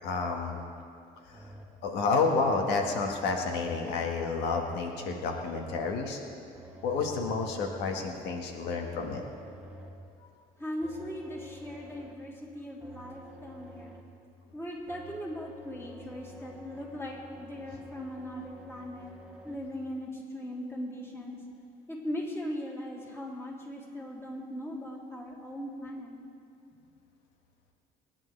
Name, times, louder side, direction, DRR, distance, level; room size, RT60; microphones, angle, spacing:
voice 1, 0.0-0.6 1.3-1.4 1.8-6.2 6.8-9.2, left 4 dB, 90° left, 2 dB, 1.5 m, -30 dB
sound 1, 1.3-1.8 2.4-3.9 4.5-5.9 6.5-8.0 8.6-10.1 10.8-12.3 12.8-14.2 14.9-19.6, right 1 dB, 5° right, 1.6 m, -49 dB
voice 2, 10.6-13.9 14.5-19.1 19.4-21.4 21.9-26.2, equal, 15° left, -4 dB, 3.3 m, -39 dB
26.0 x 10.5 x 3.3 m, 2.4 s
cardioid pair, 110°, 17 cm